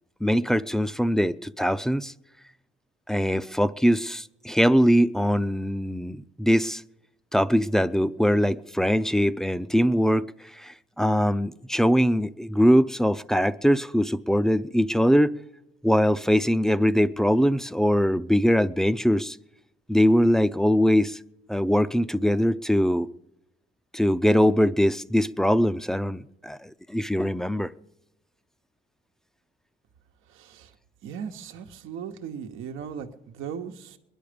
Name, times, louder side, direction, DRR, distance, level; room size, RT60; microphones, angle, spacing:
voice 1, 0.2-2.1 3.1-6.8 7.3-15.3 15.8-19.4 19.9-21.2 21.5-23.1 23.9-27.7, equal, ahead, 0.5 m, -22 dB
voice 2, 30.2-30.8 31.0-34.0, right 7 dB, 90° right, 1.1 m, -38 dB
22.0 x 11.0 x 5.1 m
cardioid pair, 90°, 20 cm